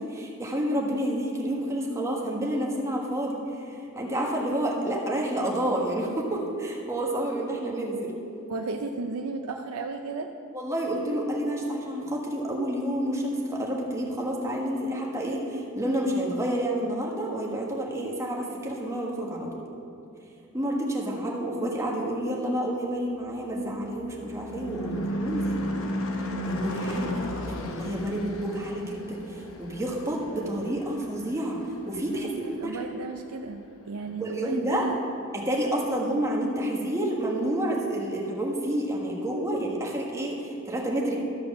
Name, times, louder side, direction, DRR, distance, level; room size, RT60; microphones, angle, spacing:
voice 1, 0.0-3.4 3.9-8.1 10.5-19.6 20.5-25.7 26.5-29.2 29.6-31.6 31.9-32.8 34.2-34.8 35.3-41.2, right 1 dB, 15° right, -2 dB, 1.5 m, -29 dB
voice 2, 8.5-10.3 27.0-27.2 32.1-33.6 33.9-35.0, right 3 dB, 80° right, 4 dB, 0.5 m, -34 dB
Car passing by / Truck / Engine, 23.4-32.1, left 1 dB, 65° left, 0.9 m, -34 dB
13.0 x 4.9 x 7.2 m, 2.6 s
head